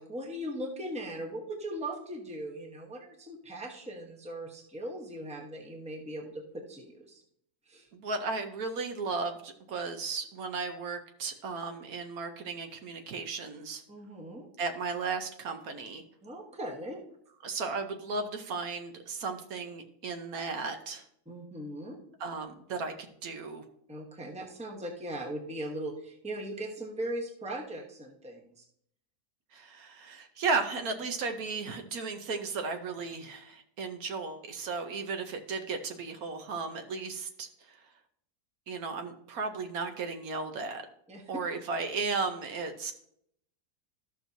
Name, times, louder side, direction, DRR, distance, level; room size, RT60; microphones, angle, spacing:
voice 1, 0.0-7.2 7.7-7.9 13.9-14.5 16.2-17.0 21.3-22.0 23.9-28.6 41.1-41.2, right 1 dB, 5° right, 1 dB, 1.0 m, -39 dB
voice 2, 7.9-13.8 14.6-16.0 17.4-21.1 22.2-23.6 29.5-37.8 38.7-40.8 41.3-42.9, right 4 dB, 70° right, 6 dB, 1.2 m, -35 dB
13.5 x 6.1 x 2.7 m, 0.71 s
omnidirectional pair, 1.7 m